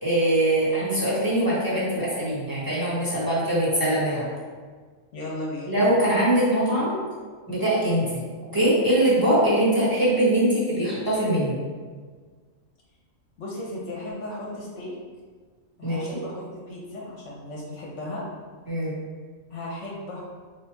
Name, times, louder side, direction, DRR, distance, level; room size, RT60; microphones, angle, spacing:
voice 1, 0.0-4.3 5.6-7.0 7.5-8.2 8.5-11.6 15.8-16.2 18.7-18.9, right 1 dB, 15° right, -10 dB, 1.5 m, -22 dB
voice 2, 5.1-5.8 13.4-14.9 15.8-18.2 19.5-20.2, left 1 dB, 65° left, -4 dB, 1.1 m, -35 dB
4.2 x 3.5 x 3.4 m, 1.5 s
omnidirectional pair, 1.4 m